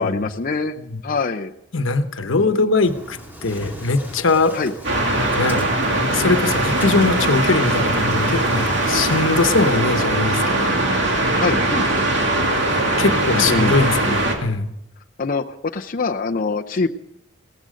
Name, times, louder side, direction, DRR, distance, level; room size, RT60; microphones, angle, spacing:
voice 1, 0.0-0.7 1.0-1.5 2.4-2.7 4.5-4.7 11.4-11.9 13.3-13.8 15.2-16.9, left 4 dB, 45° left, 3 dB, 0.7 m, -24 dB
voice 2, 1.7-4.6 5.4-5.7 6.1-10.8 13.0-14.7, left 3 dB, 85° left, 9 dB, 1.1 m, -21 dB
Engine starting, 2.8-9.7, equal, 10° right, 2.5 m, -37 dB
sound 1, 4.8-14.4, right 1 dB, 65° right, 2.8 m, -20 dB
18.0 x 14.0 x 5.2 m, 0.82 s
head